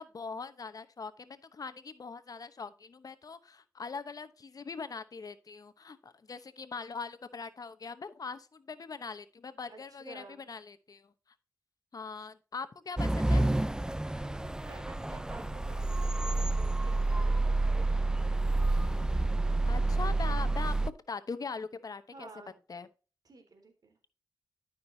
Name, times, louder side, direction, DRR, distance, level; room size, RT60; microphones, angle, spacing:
voice 1, 0.0-11.1 11.9-13.5 19.7-22.3 22.7-22.9, left 4 dB, 60° left, 12 dB, 0.9 m, -41 dB
voice 2, 9.7-10.4 12.1-12.2 14.1-18.4 19.4-19.6 22.1-22.5 23.2-24.0, right 3 dB, 65° right, 4 dB, 3.6 m, -52 dB
sound 1, 13.0-20.9, right 2 dB, 10° right, 0.5 m, -29 dB
13.0 x 6.0 x 2.8 m, 0.35 s
cardioid pair, 60°, 7 cm